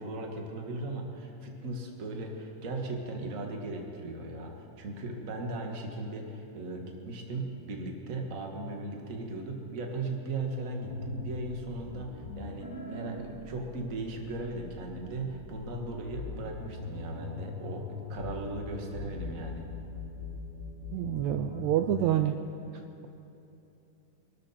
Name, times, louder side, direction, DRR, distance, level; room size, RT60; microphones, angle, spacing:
voice 1, 0.0-19.7, right 2 dB, 35° right, 1 dB, 1.4 m, -37 dB
sound 1, 10.8-22.1, left 4 dB, 35° left, 3.4 m, -41 dB
voice 2, 20.9-22.3, right 12 dB, 80° right, 7 dB, 1.7 m, -27 dB
24.0 x 12.5 x 4.4 m, 2.9 s
omnidirectional pair, 3.6 m